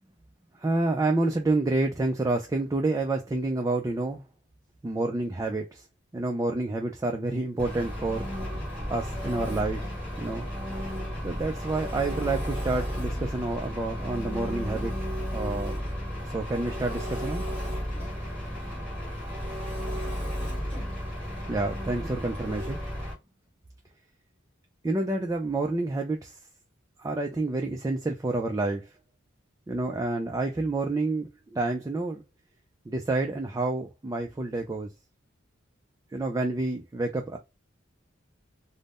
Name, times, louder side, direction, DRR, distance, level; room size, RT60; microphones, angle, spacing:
voice 1, 0.6-4.2 4.8-5.8 6.1-8.3 8.9-10.5 11.2-14.9 15.3-15.8 16.3-17.5 21.5-22.8 24.8-26.3 27.0-28.9 29.7-32.2 32.9-34.9 36.1-37.4, right 2 dB, 15° right, 0.3 m, -29 dB
Engine, 7.6-23.1, equal, 5° left, 1.5 m, -33 dB
3.5 x 2.0 x 2.4 m
head